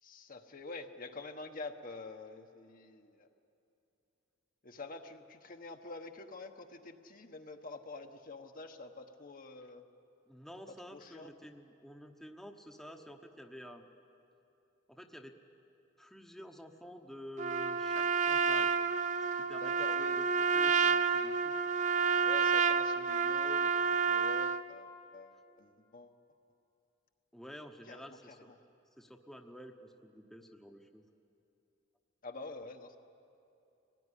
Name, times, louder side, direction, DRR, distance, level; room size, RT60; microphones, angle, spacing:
voice 1, 0.0-3.3 4.6-9.8 10.9-11.3 19.6-20.2 22.2-26.2 27.8-28.6 32.2-33.0, left 3 dB, 45° left, 5 dB, 1.2 m, -47 dB
voice 2, 10.3-13.9 14.9-15.3 16.0-18.8 19.3-19.7 20.0-21.5 27.3-28.5 29.0-31.0, equal, ahead, 3 dB, 1.1 m, -50 dB
Trumpet, 17.4-24.6, right 6 dB, 40° right, 0.6 m, -29 dB
24.0 x 19.0 x 10.0 m, 2.8 s
head